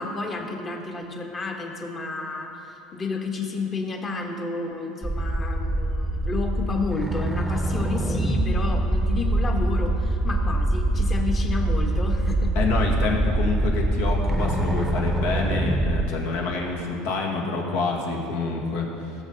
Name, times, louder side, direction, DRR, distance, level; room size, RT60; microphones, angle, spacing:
voice 1, 0.0-12.7, left 3 dB, 25° left, 3 dB, 1.2 m, -31 dB
sound 1, 5.0-16.0, right 1 dB, 5° right, 0.8 m, -24 dB
voice 2, 12.6-19.1, left 3 dB, 75° left, 0 dB, 1.9 m, -27 dB
18.0 x 7.4 x 4.0 m, 2.8 s
supercardioid pair, 140°, 0 cm